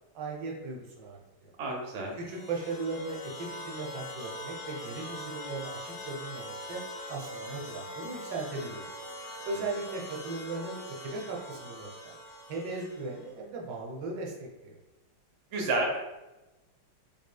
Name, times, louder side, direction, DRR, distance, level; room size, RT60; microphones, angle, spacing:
voice 1, 0.1-1.5 2.1-6.8 7.1-8.9 9.5-12.1 12.5-14.7, right 3 dB, 80° right, -1 dB, 1.4 m, -37 dB
voice 2, 1.6-2.1 15.5-16.0, right 2 dB, 55° right, -1 dB, 0.7 m, -30 dB
sound 1, 2.1-13.3, left 1 dB, 65° left, 1.1 m, -43 dB
3.7 x 3.4 x 2.2 m, 1.0 s
omnidirectional pair, 1.9 m